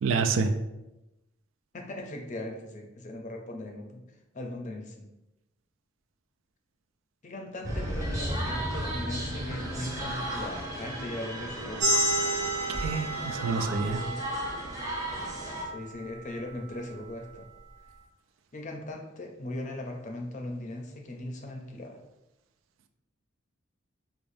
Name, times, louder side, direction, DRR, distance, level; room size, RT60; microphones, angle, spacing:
voice 1, 0.0-0.5 12.7-14.0, right 4 dB, 85° right, 8 dB, 0.3 m, -28 dB
voice 2, 1.7-4.0 4.3-5.1 7.2-12.0 15.7-17.5 18.5-22.0, left 1 dB, 40° left, 2 dB, 0.5 m, -39 dB
sound 1, 7.6-15.7, equal, 15° right, 0.6 m, -35 dB
sound 2, 11.8-17.0, right 1 dB, 35° right, 1.2 m, -32 dB
4.8 x 2.1 x 2.6 m, 0.95 s
head